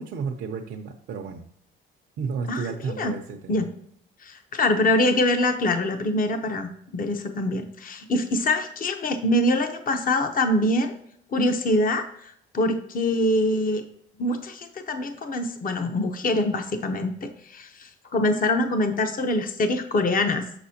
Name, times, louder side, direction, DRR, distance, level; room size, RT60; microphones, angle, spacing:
voice 1, 0.0-1.4 2.2-3.6, right 5 dB, 70° right, 1 dB, 0.7 m, -32 dB
voice 2, 2.5-3.1 3.5-3.6 4.2-10.9 11.3-13.8 14.2-20.5, left 1 dB, 45° left, 6 dB, 0.9 m, -24 dB
6.2 x 6.0 x 2.8 m, 0.67 s
cardioid pair, 90°, 20 cm